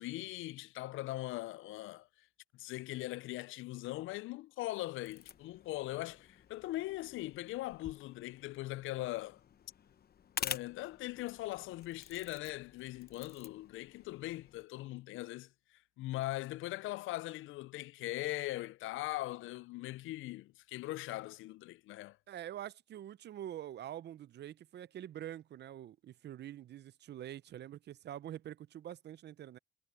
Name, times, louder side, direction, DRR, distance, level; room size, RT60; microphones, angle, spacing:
voice 1, 0.0-2.1 2.5-9.4 10.4-15.5 16.0-22.2, left 17 dB, 80° left, 0.4 m, -40 dB
sound 1, 5.0-14.6, left 8 dB, 50° left, 1.0 m, -48 dB
voice 2, 22.3-29.6, right 11 dB, 60° right, 0.6 m, -46 dB
cardioid pair, 90°, 20 cm